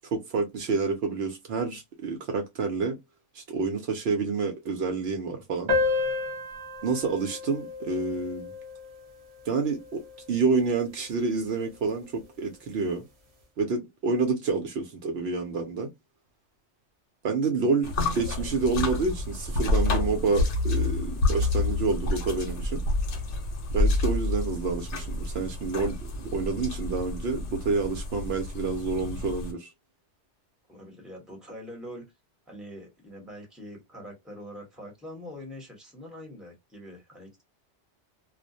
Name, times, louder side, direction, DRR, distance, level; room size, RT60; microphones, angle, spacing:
voice 1, 0.1-3.0 3.3-5.7 6.8-8.5 9.5-10.0 10.3-13.0 13.6-15.9 17.2-22.8 23.7-29.7, right 4 dB, 70° right, 0.8 m, -28 dB
sound 1, 5.7-10.7, left 3 dB, 35° right, 0.6 m, -32 dB
sound 2, 17.8-29.5, left 2 dB, 80° left, 1.0 m, -29 dB
voice 2, 30.7-32.1 32.5-37.4, equal, ahead, 0.9 m, -44 dB
2.3 x 2.1 x 2.6 m
omnidirectional pair, 1.2 m